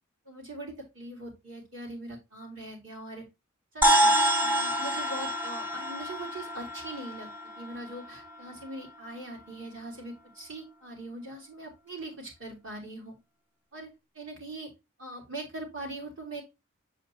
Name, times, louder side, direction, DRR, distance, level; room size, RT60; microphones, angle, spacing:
voice 1, 0.3-3.3 3.7-4.1 4.4-7.3 7.6-13.2 13.7-13.9 14.1-14.7 15.0-16.4, right 2 dB, 60° right, -1 dB, 4.0 m, -41 dB
sound 1, 3.8-8.4, equal, 10° right, 0.5 m, -27 dB
8.0 x 5.1 x 2.9 m, 0.24 s
head